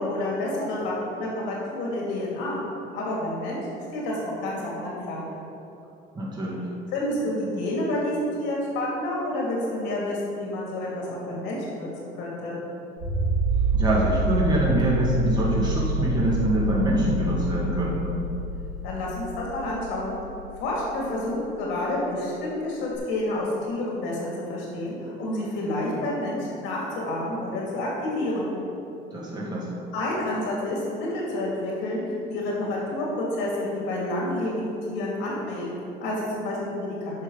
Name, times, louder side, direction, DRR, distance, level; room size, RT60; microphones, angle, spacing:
voice 1, 0.0-2.6 2.9-3.6 3.9-5.3 6.9-12.6 18.8-20.2 20.6-28.5 29.9-32.0 32.3-37.2, left 1 dB, 75° left, -4 dB, 2.5 m, -29 dB
voice 2, 6.2-6.7 13.7-18.2 29.1-29.8, right 1 dB, 20° right, -5 dB, 2.1 m, -25 dB
sound 1, 13.0-21.4 22.9-23.0, right 2 dB, 55° right, 2.5 m, -27 dB
10.5 x 6.3 x 5.4 m, 2.9 s
cardioid pair, 170°, 19 cm